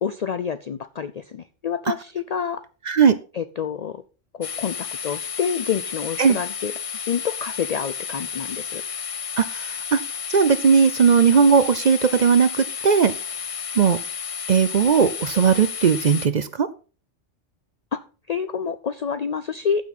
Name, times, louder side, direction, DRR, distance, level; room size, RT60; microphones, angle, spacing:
voice 1, 0.0-2.6 3.3-4.0 4.3-6.7 7.0-8.8 17.9-19.9, left 7 dB, 65° left, 12 dB, 0.4 m, -28 dB
sound 1, 4.4-16.3, left 8 dB, 35° left, 0.7 m, -32 dB
voice 2, 9.4-10.0 10.3-13.1 13.8-14.0 14.5-16.7, right 6 dB, 55° right, 14 dB, 0.5 m, -18 dB
14.5 x 6.2 x 4.1 m, 0.36 s
omnidirectional pair, 1.3 m